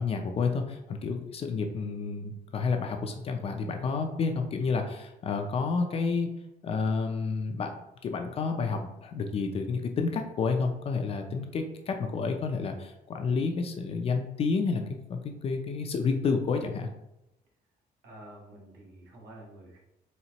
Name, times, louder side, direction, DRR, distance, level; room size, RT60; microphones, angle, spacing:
voice 1, 0.0-6.3 6.6-7.7 8.0-16.9, left 4 dB, 35° left, 4 dB, 0.4 m, -30 dB
voice 2, 18.0-19.8, right 1 dB, 75° right, -2 dB, 1.4 m, -49 dB
4.2 x 3.4 x 2.9 m, 0.89 s
cardioid pair, 175°, 17 cm